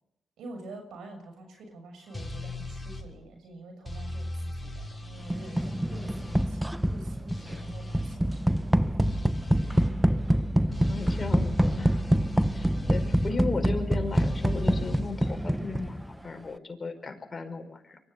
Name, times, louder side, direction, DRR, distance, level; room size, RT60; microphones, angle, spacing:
voice 1, 0.4-9.7 10.0-10.1, right 2 dB, 80° right, 5 dB, 6.8 m, -47 dB
sound 1, 2.1-3.1 3.9-6.5 7.3-8.2 9.0-9.9 10.7-13.3 14.1-15.0, left 1 dB, 15° left, 6.4 m, -38 dB
sound 2, 5.3-16.2, right 1 dB, 5° right, 0.9 m, -26 dB
voice 2, 10.7-12.0 12.6-18.0, left 4 dB, 35° left, 5 dB, 5.3 m, -36 dB
24.0 x 14.5 x 8.3 m, 0.83 s
supercardioid pair, 60°, 0 cm